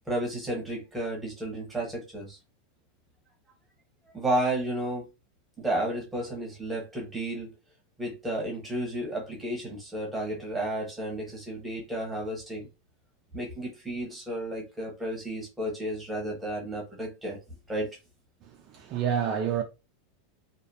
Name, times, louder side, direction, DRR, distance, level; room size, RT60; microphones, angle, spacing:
voice 1, 0.1-2.4 4.1-5.0 5.6-7.5 8.0-12.7 13.3-17.4 17.7-17.9, right 1 dB, 5° right, 1.0 m, -32 dB
voice 2, 18.4-19.6, right 8 dB, 35° right, 0.3 m, -29 dB
2.5 x 2.0 x 2.7 m
supercardioid pair, 160°, 0 cm